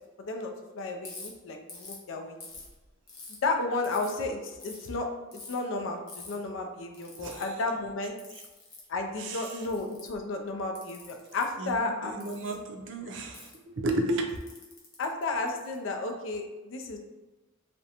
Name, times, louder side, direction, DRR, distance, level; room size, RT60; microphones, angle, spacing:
voice 1, 0.2-2.4 3.4-5.1 5.5-8.2 8.9-12.1 12.5-12.6 15.0-17.0, left 3 dB, 70° left, 4 dB, 0.4 m, -33 dB
Ratchet pawl, 1.0-1.3 1.7-2.0 2.4-3.4 3.8-4.2 4.6-4.9 5.3-5.6 6.1-6.3 6.9-7.4 8.2-8.8 9.4-10.2 10.7-11.4 12.2-12.5 13.3-13.5 14.3-15.8, left 4 dB, 50° left, 0.7 m, -46 dB
voice 2, 7.2-7.5 9.2-9.6 11.6-14.3, right 1 dB, 65° right, 3 dB, 0.4 m, -33 dB
2.5 x 2.1 x 2.8 m, 1.2 s
head